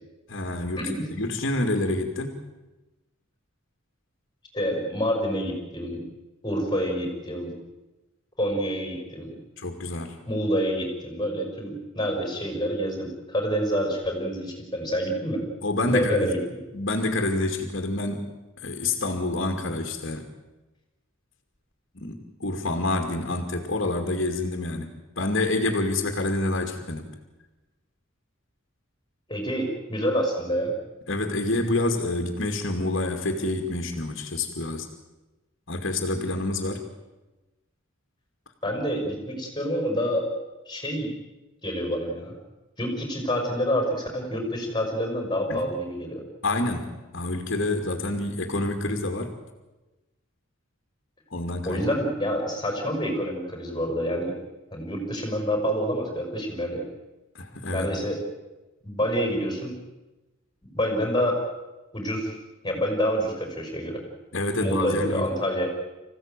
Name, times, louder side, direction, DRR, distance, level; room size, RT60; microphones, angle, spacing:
voice 1, 0.3-0.9 1.2-2.4 9.6-10.2 15.6-16.4 16.7-18.4 18.6-20.3 21.9-27.1 31.1-34.9 35.7-36.9 45.5-45.6 46.4-49.4 51.3-51.9 57.3-57.9 64.3-65.3, left 2 dB, 60° left, 3 dB, 2.4 m, -27 dB
voice 2, 4.5-6.0 6.4-7.5 8.4-9.3 10.3-15.4 15.9-16.6 29.3-30.7 38.6-40.3 40.7-41.1 41.6-42.4 42.8-46.2 51.7-54.3 54.7-56.8 57.7-58.2 58.8-59.8 60.6-61.4 61.9-62.4 62.6-64.0 64.6-65.7, equal, 20° left, 3 dB, 5.4 m, -27 dB
26.0 x 16.0 x 9.1 m, 1.1 s
head